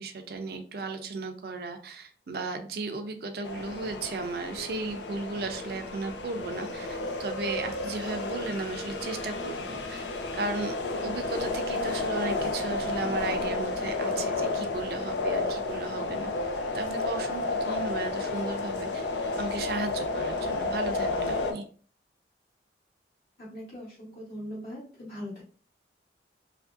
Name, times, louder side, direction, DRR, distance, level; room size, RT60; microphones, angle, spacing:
voice 1, 0.0-10.1 10.3-16.3 16.7-19.0 19.4-21.6, right 3 dB, 55° right, 6 dB, 0.4 m, -35 dB
sound 1, 3.4-21.5, left 3 dB, 80° left, 0.5 m, -32 dB
voice 2, 23.4-25.4, equal, 50° left, -8 dB, 0.9 m, -40 dB
2.9 x 2.5 x 2.4 m, 0.42 s
head